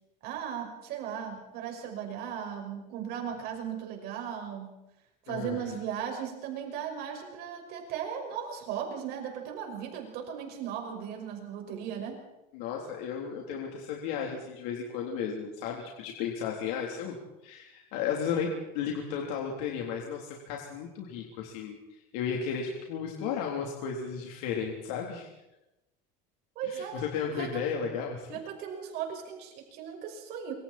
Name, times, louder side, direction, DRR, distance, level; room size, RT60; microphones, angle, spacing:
voice 1, 0.2-4.8 5.3-12.2 26.6-27.0 27.4-27.6 28.3-30.5, right 8 dB, 55° right, 3 dB, 5.8 m, -37 dB
voice 2, 5.3-5.8 12.5-17.2 17.4-25.3 26.6-28.4, left 7 dB, 80° left, 0 dB, 3.6 m, -34 dB
27.0 x 25.0 x 4.4 m, 0.96 s
cardioid pair, 165°, 19 cm